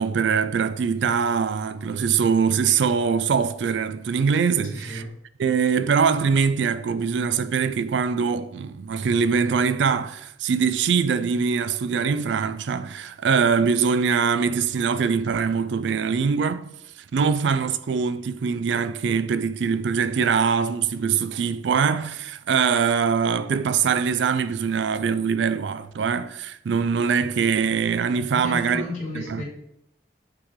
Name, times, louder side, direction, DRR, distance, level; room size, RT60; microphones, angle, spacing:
voice 1, 0.0-5.0 5.4-16.7 17.1-28.8 29.2-29.4, right 6 dB, 70° right, 0.4 m, -23 dB
voice 2, 4.6-5.1 28.3-29.4, left 1 dB, 45° left, 2.3 m, -33 dB
8.7 x 3.3 x 3.6 m
head